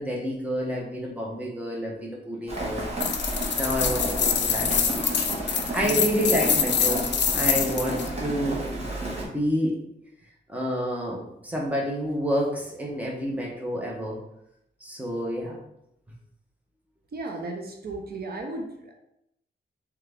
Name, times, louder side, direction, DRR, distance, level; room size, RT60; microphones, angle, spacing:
voice 1, 0.0-2.9 3.6-5.0 5.4-9.8 10.5-14.2 14.8-15.6, equal, 10° right, -2 dB, 0.8 m, -29 dB
Rain, 2.5-9.2, right 1 dB, 35° right, 1.1 m, -32 dB
sound 1, 3.0-8.1, left 7 dB, 80° left, 0.5 m, -25 dB
voice 2, 17.1-18.9, right 2 dB, 60° right, 2 dB, 0.7 m, -35 dB
3.7 x 3.4 x 3.4 m, 0.80 s
wide cardioid pair, 155°, 18 cm